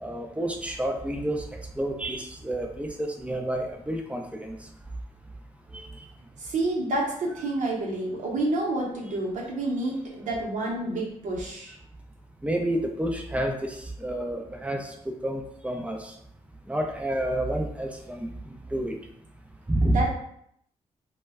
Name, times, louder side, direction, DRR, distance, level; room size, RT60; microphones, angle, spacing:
voice 1, 0.0-4.6 5.7-6.1 12.4-16.1 16.7-18.9 19.7-20.0, right 1 dB, 10° right, 3 dB, 0.4 m, -30 dB
voice 2, 6.4-11.8 19.9-20.1, right 2 dB, 75° right, -3 dB, 0.8 m, -29 dB
2.2 x 2.1 x 3.4 m, 0.71 s
cardioid pair, 80°, 13 cm